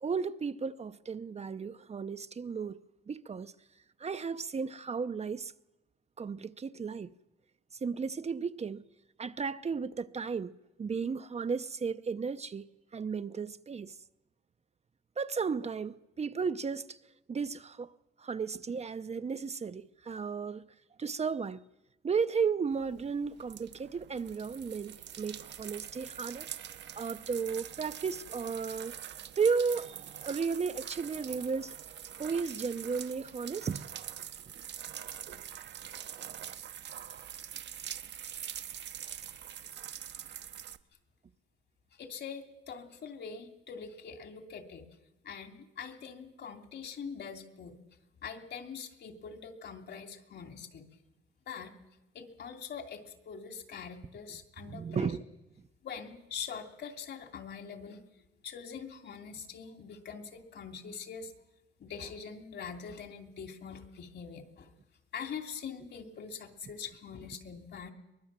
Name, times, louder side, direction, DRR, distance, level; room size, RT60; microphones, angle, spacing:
voice 1, 0.0-2.8 3.1-3.5 4.0-5.5 6.2-7.1 7.8-8.8 9.2-10.5 10.8-12.7 12.9-13.9 15.2-17.0 17.3-17.9 18.2-20.7 21.0-21.6 22.0-26.5 26.9-28.9 29.4-31.8 32.2-33.9 54.7-55.2, right 5 dB, 35° right, 0.7 m, -34 dB
sound 1, 22.7-40.8, right 9 dB, 60° right, 1.0 m, -44 dB
voice 2, 42.0-44.8 45.2-47.8 48.2-50.8 51.5-51.7 52.1-55.1 55.8-58.0 58.4-61.3 61.8-64.7 65.1-67.9, left 6 dB, 60° left, 2.8 m, -43 dB
23.5 x 20.5 x 7.5 m
cardioid pair, 90°, 20 cm